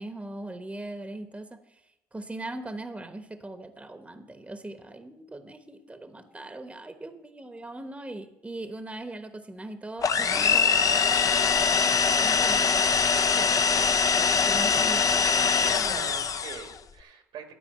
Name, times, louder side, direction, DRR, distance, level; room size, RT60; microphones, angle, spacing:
voice 1, 0.0-1.8 2.1-10.7 12.2-12.9 13.3-13.5 14.5-15.0, right 2 dB, 15° right, 8 dB, 1.1 m, -40 dB
sound 1, 10.0-16.7, left 5 dB, 40° left, 0.7 m, -23 dB
voice 2, 14.4-15.0 15.6-17.6, right 6 dB, 70° right, 6 dB, 1.9 m, -43 dB
12.0 x 4.8 x 8.6 m, 0.91 s
hypercardioid pair, 65°, 9 cm